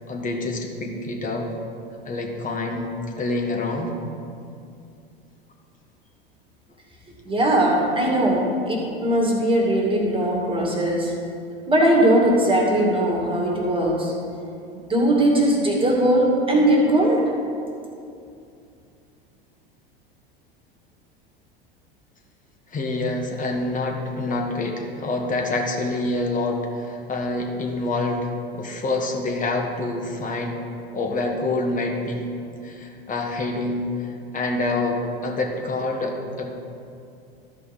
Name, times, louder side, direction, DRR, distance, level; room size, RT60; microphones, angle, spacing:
voice 1, 0.1-1.5 2.0-3.9 22.7-28.3 28.5-30.6 30.9-32.3 32.6-33.9 34.3-35.0 35.2-36.5, left 2 dB, 25° left, 1 dB, 1.5 m, -26 dB
voice 2, 7.3-11.1 11.7-14.1 14.8-17.3, right 1 dB, 15° right, -2 dB, 2.1 m, -20 dB
13.5 x 5.3 x 4.1 m, 2.5 s
hypercardioid pair, 80°, 29 cm